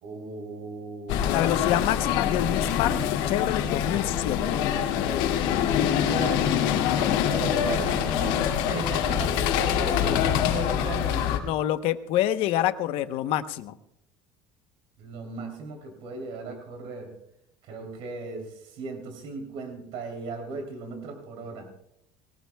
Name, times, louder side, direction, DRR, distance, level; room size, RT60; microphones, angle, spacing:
voice 1, 0.0-1.5 6.1-6.6 7.2-11.5 15.0-17.1 17.6-21.7, right 3 dB, 60° right, 3 dB, 3.1 m, -37 dB
sound 1, 1.1-11.4, left 9 dB, 80° left, 2.3 m, -25 dB
voice 2, 1.3-3.0 3.3-4.5 11.4-13.7, left 12 dB, 60° left, 11 dB, 0.9 m, -26 dB
21.5 x 18.0 x 2.3 m, 0.76 s
cardioid pair, 150°, 11 cm